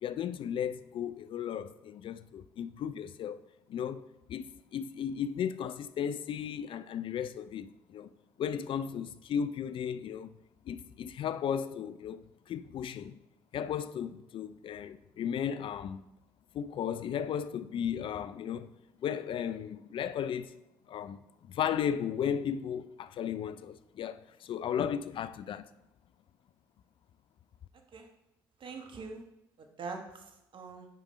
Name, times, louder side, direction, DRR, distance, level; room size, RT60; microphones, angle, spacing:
voice 1, 0.0-3.4 3.7-4.0 4.3-8.1 8.4-10.3 10.7-13.2 13.5-16.0 16.5-18.7 19.0-20.5 20.9-25.7, left 8 dB, 50° left, 0.4 m, -35 dB
voice 2, 28.6-29.2 29.6-30.9, right 4 dB, 50° right, 1.2 m, -43 dB
9.1 x 5.1 x 3.2 m
hypercardioid pair, 50°, 11 cm